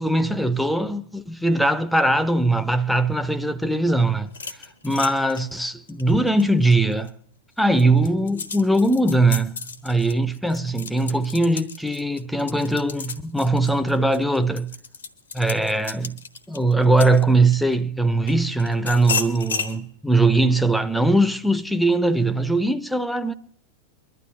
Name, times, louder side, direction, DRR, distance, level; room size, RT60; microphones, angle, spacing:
voice 1, 0.0-4.3 4.8-7.1 7.6-9.6 9.8-14.7 15.3-16.2 16.5-23.3, right 2 dB, ahead, 0.6 m, -21 dB
sound 1, 4.3-7.1 7.6-17.7 18.3-19.8, left 5 dB, 75° left, 1.2 m, -33 dB
23.5 x 12.0 x 2.7 m
figure-of-eight pair, 90°, 0 cm